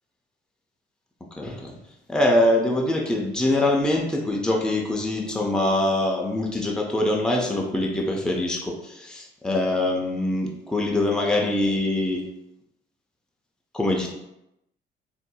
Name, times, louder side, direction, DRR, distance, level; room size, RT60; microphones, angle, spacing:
voice 1, 1.4-1.7 2.1-12.3 13.7-14.1, left 1 dB, 5° left, 0 dB, 0.5 m, -23 dB
4.1 x 2.6 x 2.2 m, 0.86 s
cardioid pair, 90°, 20 cm